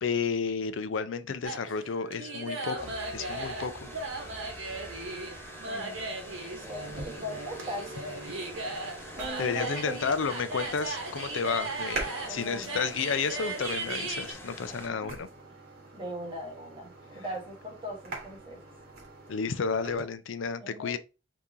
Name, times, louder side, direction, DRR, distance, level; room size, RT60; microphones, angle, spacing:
voice 1, 0.0-3.7 9.4-15.3 19.3-21.0, left 5 dB, 70° left, 0.5 m, -31 dB
sound 1, 1.4-14.3, right 2 dB, 80° right, 1.0 m, -37 dB
sound 2, 2.8-14.9, left 1 dB, 10° left, 0.7 m, -46 dB
voice 2, 5.6-6.0 6.5-7.9 9.1-10.0 12.3-12.8 14.7-15.1 15.9-18.6 20.6-21.0, equal, 25° right, 1.2 m, -39 dB
sound 3, 6.8-20.0, right 2 dB, 55° right, 1.4 m, -45 dB
3.7 x 2.9 x 3.8 m
head